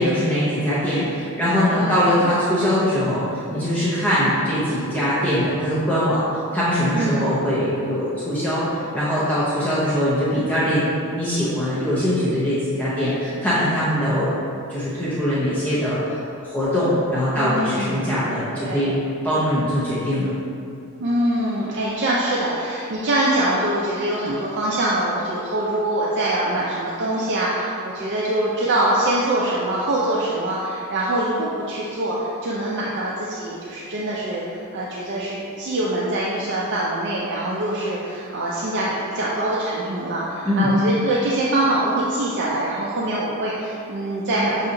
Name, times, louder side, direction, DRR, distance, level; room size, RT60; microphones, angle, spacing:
voice 1, 0.0-10.8 11.1-14.3 14.7-19.0 19.2-20.3 40.4-40.7, equal, 10° left, -11 dB, 0.6 m, -22 dB
voice 2, 1.7-2.3 6.9-7.4 17.3-18.1 18.5-18.9 21.0-44.7, right 1 dB, 55° right, -5 dB, 0.4 m, -24 dB
6.0 x 2.8 x 2.5 m, 2.5 s
head